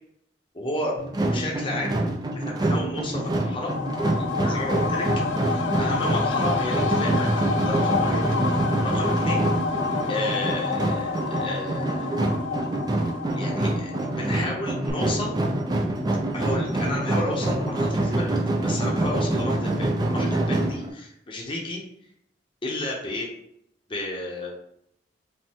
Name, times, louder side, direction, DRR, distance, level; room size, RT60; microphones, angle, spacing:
voice 1, 0.5-1.0 1.3-1.9 2.3-3.7 4.2-5.1 5.5-9.4 10.1-12.3 13.3-15.4 16.3-18.4 18.6-21.8 22.6-23.3 23.9-24.5, left 1 dB, 30° left, -2 dB, 0.8 m, -32 dB
sound 1, 1.0-20.9, right 1 dB, 20° right, 0.5 m, -26 dB
sound 2, 3.1-14.6 14.9-15.0, left 5 dB, 80° left, 0.4 m, -29 dB
5.2 x 2.2 x 3.5 m, 0.75 s
head